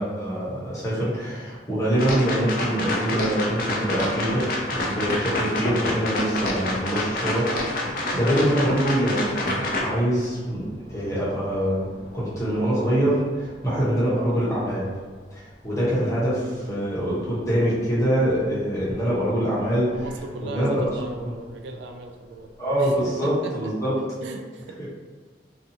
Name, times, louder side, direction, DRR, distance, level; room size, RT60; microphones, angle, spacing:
voice 1, 0.0-7.9 8.1-11.9 12.1-14.9 15.3-19.9 20.4-20.9 21.2-21.3 22.6-24.0 24.8-24.9, equal, 15° left, -8 dB, 0.8 m, -24 dB
sound 1, 2.0-9.8, left 1 dB, 50° left, 0.4 m, -27 dB
sound 2, 3.5-23.1, equal, 25° right, 1.2 m, -46 dB
voice 2, 19.8-23.0 23.2-23.7 24.2-24.8, right 3 dB, 80° right, 4 dB, 0.3 m, -38 dB
2.7 x 2.3 x 2.6 m, 1.4 s
head